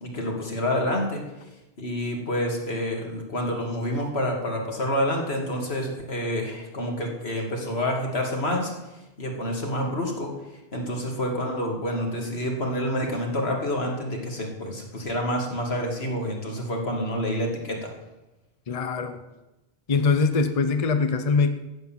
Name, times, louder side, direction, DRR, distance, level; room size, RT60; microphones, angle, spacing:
voice 1, 0.0-1.2 1.8-8.7 9.2-10.3 10.7-17.9, equal, 80° left, 1 dB, 2.7 m, -28 dB
voice 2, 18.7-19.2 19.9-21.5, left 4 dB, 40° left, 9 dB, 0.8 m, -22 dB
14.0 x 8.4 x 7.4 m, 1.0 s
omnidirectional pair, 1.1 m